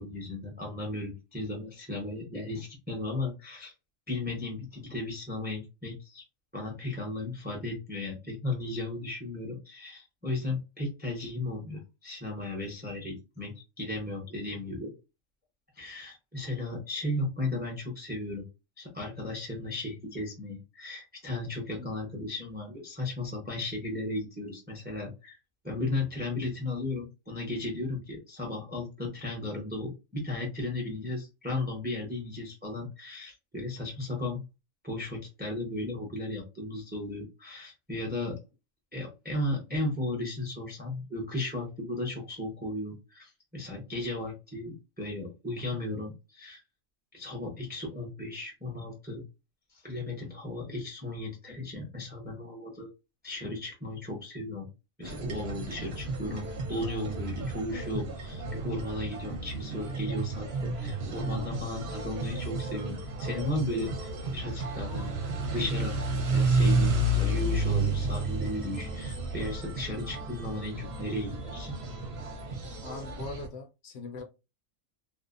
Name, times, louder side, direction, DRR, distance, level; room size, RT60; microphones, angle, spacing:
voice 1, 0.0-3.7 4.1-6.2 6.5-14.9 15.8-18.4 18.8-25.4 25.6-34.4 34.8-38.4 38.9-46.6 47.1-49.2 49.7-52.9 53.2-54.7 55.0-65.1 65.4-71.7, left 2 dB, 10° right, 0.5 m, -35 dB
sound 1, 55.0-73.5, right 2 dB, 55° right, 0.9 m, -31 dB
voice 2, 72.8-74.2, left 3 dB, 70° left, 0.8 m, -41 dB
2.6 x 2.0 x 2.4 m
omnidirectional pair, 1.4 m